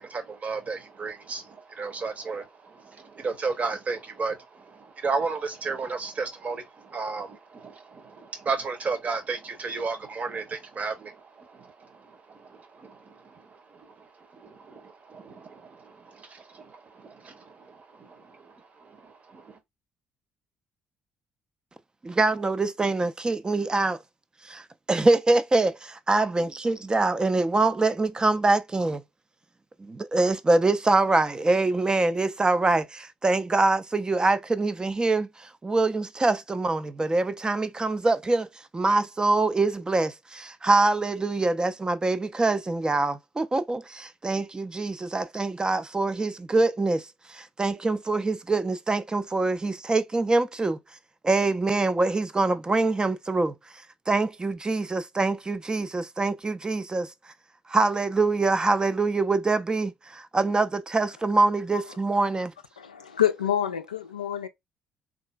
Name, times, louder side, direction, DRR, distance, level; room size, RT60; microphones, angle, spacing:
voice 1, 0.0-19.6, right 4 dB, 35° right, 0.8 m, -34 dB
voice 2, 22.0-24.0 24.4-24.6 24.9-29.0 29.8-50.8 51.2-53.5 54.1-57.1 57.7-62.5, right 3 dB, 20° right, 0.4 m, -24 dB
voice 3, 62.8-64.5, left 10 dB, 85° left, 0.4 m, -27 dB
3.6 x 2.3 x 2.3 m
figure-of-eight pair, 45°, 4 cm